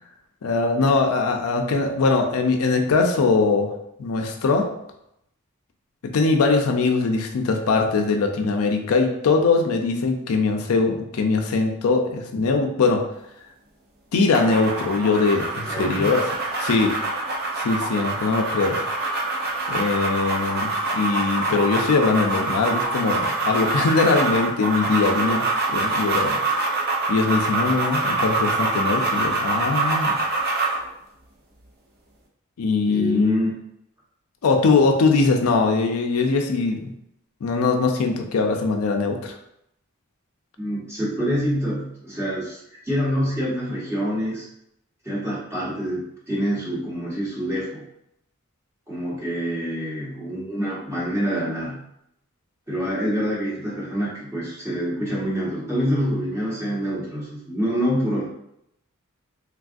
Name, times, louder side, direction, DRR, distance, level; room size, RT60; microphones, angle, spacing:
voice 1, 0.4-3.7 4.0-4.7 6.0-13.1 14.1-16.2 16.6-17.0 17.5-18.8 19.7-26.4 27.1-30.2 32.6-33.3 34.4-36.9 37.4-39.3, left 4 dB, 85° left, 3 dB, 0.4 m, -21 dB
sound 1, 14.3-30.8, right 3 dB, 45° right, 0.5 m, -25 dB
voice 2, 15.6-16.1 32.9-33.6 40.6-44.5 45.0-47.9 48.9-51.8 52.7-58.3, equal, 10° right, -7 dB, 0.9 m, -26 dB
3.3 x 2.3 x 2.5 m, 0.78 s
head